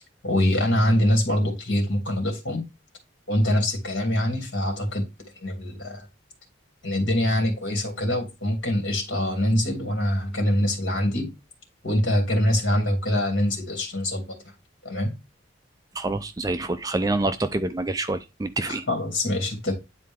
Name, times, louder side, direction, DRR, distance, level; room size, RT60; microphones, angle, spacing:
voice 1, 0.2-2.6 3.3-5.0 5.4-6.1 6.8-11.3 11.8-14.4 14.8-15.1 18.6-19.7, left 1 dB, 65° left, 2.7 m, -24 dB
voice 2, 16.0-18.8, right 2 dB, 20° right, 0.4 m, -27 dB
9.6 x 4.2 x 3.6 m
head